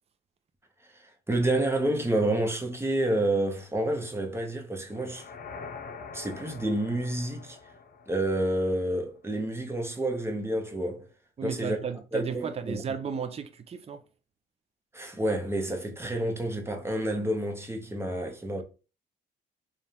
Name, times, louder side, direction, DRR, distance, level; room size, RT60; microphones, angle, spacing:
voice 1, 0.9-5.3 6.1-7.6 8.1-11.1 11.4-11.8 12.1-12.8 14.9-18.6, right 1 dB, 10° right, 1.0 m, -29 dB
sound 1, 4.9-9.0, left 5 dB, 50° left, 0.8 m, -45 dB
voice 2, 11.4-14.0, right 6 dB, 30° right, 0.5 m, -34 dB
3.4 x 2.4 x 4.2 m
cardioid pair, 90°, 20 cm